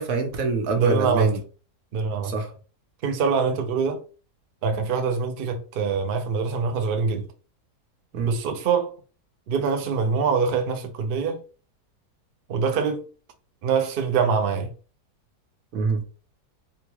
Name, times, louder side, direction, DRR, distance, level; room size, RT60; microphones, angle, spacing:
voice 1, 0.0-1.4 2.2-2.5 8.1-8.3 15.7-16.0, right 4 dB, 65° right, 1.2 m, -25 dB
voice 2, 0.8-1.3 1.9-2.3 3.0-4.0 4.6-7.3 8.2-8.9 9.5-11.4 12.5-13.1 13.6-14.7, right 5 dB, 90° right, 0.4 m, -24 dB
3.8 x 2.2 x 3.0 m
omnidirectional pair, 1.7 m